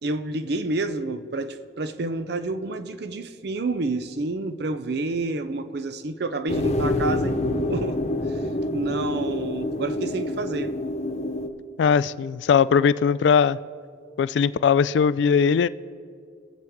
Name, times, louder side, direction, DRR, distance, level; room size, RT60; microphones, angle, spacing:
voice 1, 0.0-8.0 8.3-8.4 8.7-10.7, right 2 dB, 65° right, 0.6 m, -29 dB
sound 1, 6.5-11.5, left 2 dB, 40° left, 0.7 m, -27 dB
voice 2, 11.8-13.6 14.2-15.7, left 6 dB, 75° left, 0.3 m, -19 dB
21.5 x 7.5 x 3.6 m
head